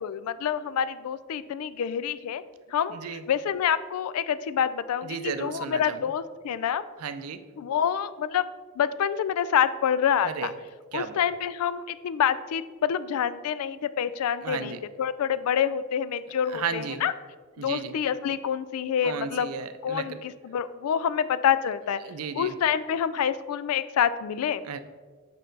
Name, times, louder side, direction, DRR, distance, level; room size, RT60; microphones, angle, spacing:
voice 1, 0.0-2.4 2.7-2.9 3.3-6.8 7.6-8.4 8.8-10.5 10.9-17.1 17.6-19.5 19.8-22.0 22.4-24.8, left 8 dB, 80° left, 15 dB, 0.3 m, -27 dB
voice 2, 2.9-3.2 5.0-6.1 7.0-7.4 10.2-10.5 10.9-11.2 14.4-14.8 16.5-17.0 17.6-17.9 19.0-20.2 22.0-22.5 24.6-24.8, right 6 dB, 85° right, 11 dB, 0.5 m, -34 dB
6.4 x 5.5 x 3.9 m, 1.4 s
head